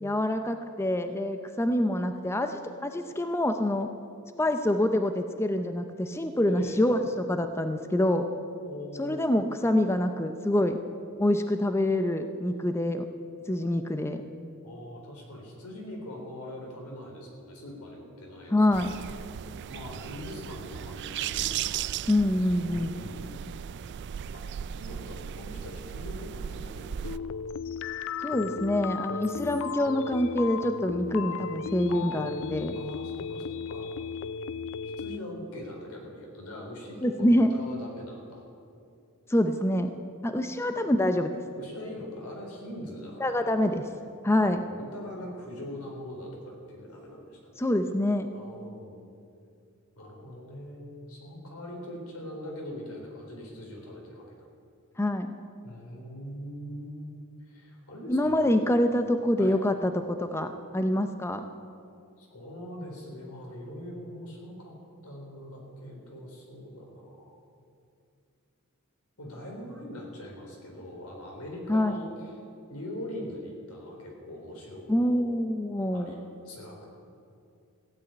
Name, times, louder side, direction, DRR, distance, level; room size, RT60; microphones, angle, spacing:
voice 1, 0.0-3.9 4.4-8.2 9.0-10.8 11.2-13.1 13.5-14.2 18.5-18.9 22.1-22.9 28.2-32.8 37.0-37.5 39.3-39.9 40.2-41.3 43.2-43.8 44.2-44.6 47.6-48.3 55.0-55.3 58.1-61.4 71.7-72.0 74.9-76.2, left 1 dB, 10° left, 7 dB, 0.5 m, -26 dB
voice 2, 6.4-6.8 8.6-9.3 14.6-19.1 19.7-21.9 22.7-23.4 24.3-27.2 31.9-32.0 32.7-34.0 35.0-38.4 41.6-43.8 44.3-47.5 48.3-49.0 50.0-54.3 55.6-57.1 57.4-58.5 59.4-59.6 62.2-64.7 65.0-67.4 69.2-72.3 72.7-75.2 75.9-76.9, left 1 dB, 80° left, 0 dB, 3.9 m, -42 dB
sound 1, 18.7-27.2, right 9 dB, 50° right, 0.3 m, -36 dB
sound 2, 27.0-35.2, left 6 dB, 60° left, 0.4 m, -35 dB
15.5 x 8.3 x 9.1 m, 2.4 s
head